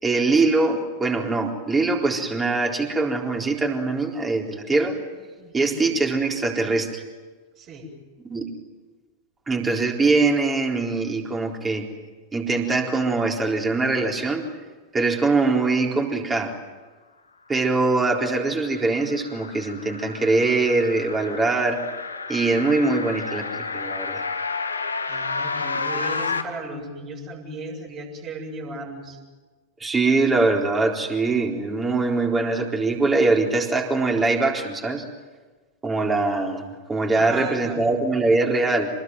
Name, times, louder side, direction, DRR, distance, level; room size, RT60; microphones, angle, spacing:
voice 1, 0.0-5.0 5.5-7.0 8.3-8.5 9.5-11.9 12.3-14.4 14.9-16.5 17.5-21.8 22.3-24.2 29.8-35.0 35.8-36.6 36.9-38.9, right 3 dB, 15° right, 1 dB, 4.1 m, -22 dB
voice 2, 5.4-5.8 7.6-7.9 25.1-29.2 37.2-37.8, right 2 dB, 35° right, 1 dB, 7.2 m, -36 dB
sound 1, 18.2-26.4, left 4 dB, 75° left, 1.8 m, -31 dB
27.0 x 20.5 x 9.3 m, 1.3 s
figure-of-eight pair, 90°, 0 cm